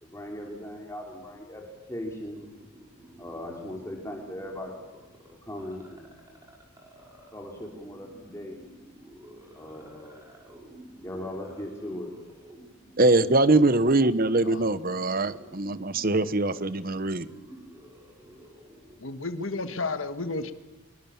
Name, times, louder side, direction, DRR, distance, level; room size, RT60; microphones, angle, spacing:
voice 1, 0.0-2.4 3.2-4.7 5.4-6.4 7.3-8.7 9.5-10.2 11.0-12.1, left 1 dB, 10° left, 0 dB, 3.1 m, -39 dB
sound 1, 2.4-19.6, right 1 dB, 15° right, 5.7 m, -52 dB
voice 2, 13.0-17.3, right 2 dB, 40° right, 15 dB, 1.1 m, -23 dB
voice 3, 19.0-20.5, left 3 dB, 60° left, 9 dB, 1.6 m, -32 dB
25.0 x 23.0 x 7.2 m, 1.1 s
head